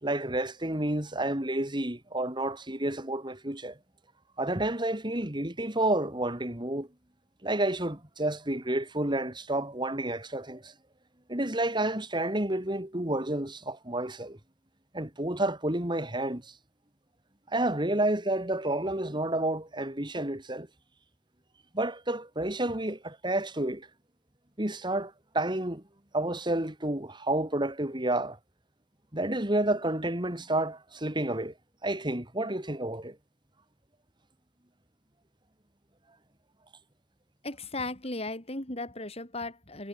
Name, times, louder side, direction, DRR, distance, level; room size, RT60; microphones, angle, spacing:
voice 1, 0.0-3.8 4.4-6.9 7.4-10.7 11.3-14.4 14.9-16.5 17.5-20.7 21.7-23.9 24.6-25.8 26.1-28.4 29.1-31.5 31.8-33.2, right 1 dB, 25° right, 3.4 m, -30 dB
voice 2, 37.4-39.9, left 2 dB, 35° left, 6.2 m, -36 dB
head